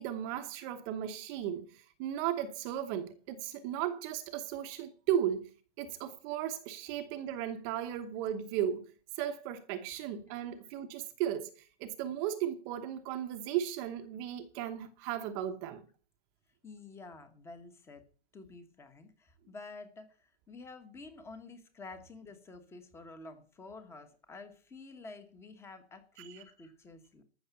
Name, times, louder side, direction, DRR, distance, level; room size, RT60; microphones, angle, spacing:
voice 1, 0.0-5.5 5.8-8.8 9.2-15.8 26.3-26.4, right 10 dB, 20° right, 1.0 m, -35 dB
voice 2, 16.6-18.0 18.3-27.2, left 3 dB, 10° left, 1.2 m, -50 dB
14.5 x 6.5 x 8.0 m
hypercardioid pair, 165°, 34 cm